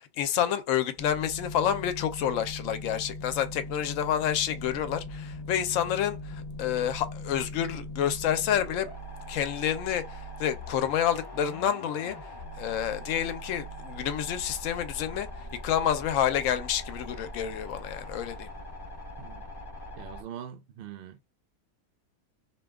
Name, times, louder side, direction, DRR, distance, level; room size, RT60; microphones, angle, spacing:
voice 1, 0.0-8.9 9.3-12.2 12.6-15.3 15.6-18.5, left 9 dB, 70° left, 0.9 m, -29 dB
sound 1, 1.0-20.2, left 1 dB, 25° left, 0.6 m, -41 dB
voice 2, 20.0-21.2, right 9 dB, 65° right, 0.6 m, -42 dB
2.7 x 2.2 x 3.4 m
omnidirectional pair, 1.5 m